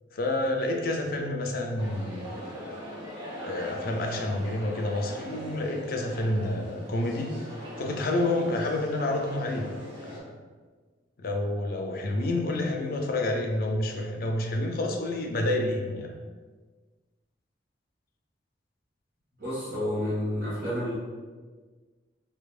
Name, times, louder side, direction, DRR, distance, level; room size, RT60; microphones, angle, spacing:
voice 1, 0.1-2.4 3.4-7.3 7.8-9.7 10.0-10.4 11.2-16.1, left 1 dB, 50° left, 2 dB, 0.5 m, -29 dB
sound 1, 1.8-10.2, equal, 25° right, 0.8 m, -41 dB
voice 2, 19.4-20.9, left 1 dB, 50° right, -10 dB, 1.3 m, -30 dB
4.3 x 2.7 x 2.4 m, 1.4 s
head